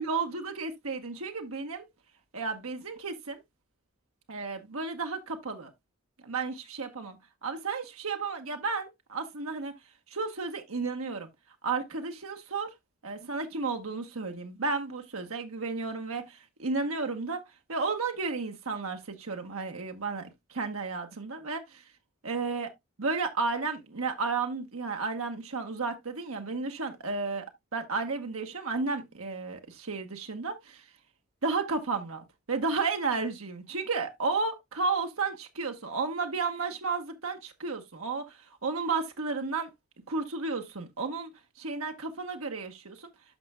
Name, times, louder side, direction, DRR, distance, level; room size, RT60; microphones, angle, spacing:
voice 1, 0.0-1.8 2.3-3.4 4.3-5.7 6.2-9.7 10.1-11.3 11.6-12.7 13.0-17.4 17.7-21.6 22.2-22.7 23.0-30.8 31.4-39.7 40.1-41.3 41.6-43.1, right 4 dB, 75° right, 1.2 m, -33 dB
12.5 x 5.4 x 2.2 m
head